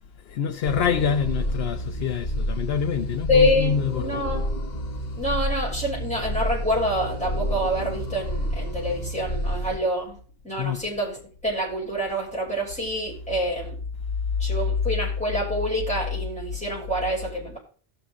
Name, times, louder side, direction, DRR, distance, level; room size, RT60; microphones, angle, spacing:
voice 1, 0.3-4.2 10.6-10.8, left 7 dB, 75° left, 0.9 m, -26 dB
sound 1, 0.6-9.8, equal, 45° left, 1.0 m, -29 dB
voice 2, 3.3-4.5 5.1-10.2 10.4-13.8 14.4-17.6, equal, 5° left, 6.3 m, -26 dB
18.0 x 6.9 x 3.6 m
omnidirectional pair, 1.1 m